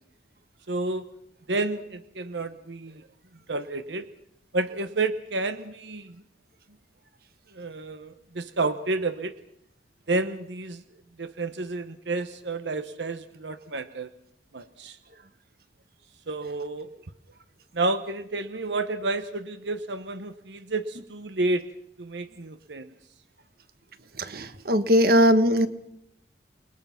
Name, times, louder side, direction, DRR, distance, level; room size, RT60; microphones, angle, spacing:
voice 1, 0.7-1.1 1.5-3.0 3.5-4.1 4.5-6.2 7.5-9.4 10.1-10.8 11.2-14.1 14.5-15.0 16.3-16.9 17.7-21.6 22.0-22.9, right 2 dB, 80° right, 10 dB, 1.0 m, -30 dB
voice 2, 24.2-25.7, equal, 55° right, 10 dB, 1.5 m, -20 dB
29.0 x 21.0 x 5.8 m, 0.79 s
head